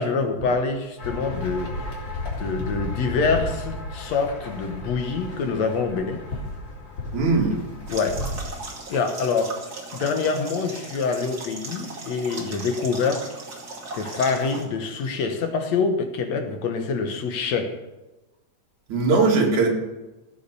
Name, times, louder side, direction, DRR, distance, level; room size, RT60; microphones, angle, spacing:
voice 1, 0.0-1.7 2.4-6.2 7.9-8.2 8.9-9.6 9.9-13.3 13.9-17.8, left 4 dB, 65° left, 6 dB, 2.2 m, -25 dB
sound 1, 1.0-8.4, left 2 dB, 35° left, 3.7 m, -33 dB
voice 2, 7.1-7.6 18.9-19.7, right 3 dB, 70° right, 0 dB, 3.7 m, -19 dB
sound 2, 7.9-14.6, right 2 dB, 35° right, 2.6 m, -37 dB
16.5 x 8.7 x 6.9 m, 1.0 s
omnidirectional pair, 3.5 m